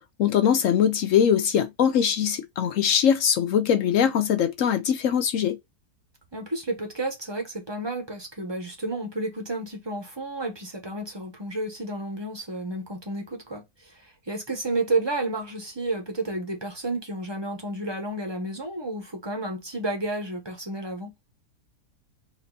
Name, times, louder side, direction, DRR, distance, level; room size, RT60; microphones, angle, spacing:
voice 1, 0.2-5.6, left 8 dB, 70° left, 0.8 m, -22 dB
voice 2, 6.3-21.1, right 2 dB, 20° right, 0.9 m, -31 dB
4.3 x 2.7 x 4.0 m
omnidirectional pair, 1.8 m